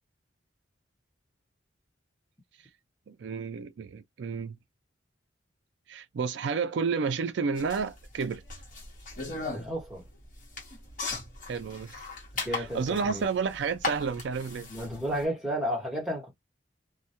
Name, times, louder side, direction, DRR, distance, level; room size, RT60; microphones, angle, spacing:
voice 1, 3.1-4.6 5.9-8.4 11.5-12.1 12.5-14.7, right 5 dB, 70° right, 0.3 m, -31 dB
sound 1, 7.6-15.2, left 3 dB, 40° left, 1.0 m, -38 dB
voice 2, 9.5-10.1 12.3-13.2 14.7-16.3, equal, 5° right, 1.0 m, -32 dB
2.2 x 2.1 x 2.7 m
head